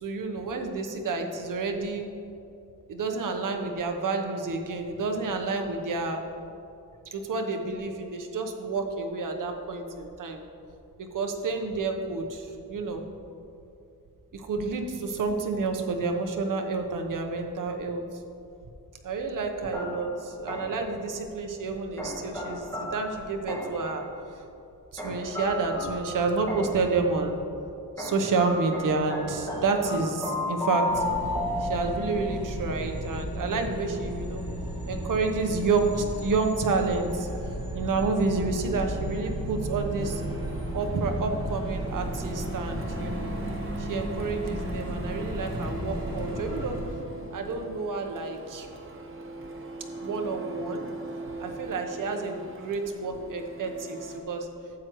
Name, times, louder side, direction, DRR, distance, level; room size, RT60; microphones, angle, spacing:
voice 1, 0.0-2.1 2.9-6.2 7.1-10.4 11.0-13.0 14.3-18.0 19.0-24.0 24.3-24.4 24.9-27.4 28.0-31.0 31.6-34.4 34.9-37.3 37.7-40.2 40.7-43.3 43.8-46.8 47.3-48.7 50.0-50.9 51.4-54.5, right 3 dB, 60° right, 4 dB, 1.0 m, -29 dB
sound 1, 19.7-20.9 22.0-23.9 25.0-26.9 28.0-32.3, left 1 dB, 10° left, 1.7 m, -33 dB
sound 2, 30.9-46.8, right 1 dB, 15° right, 2.0 m, -34 dB
Printer, 40.0-54.2, right 1 dB, 35° right, 1.0 m, -41 dB
12.5 x 8.1 x 3.1 m, 2.7 s
wide cardioid pair, 135°, 36 cm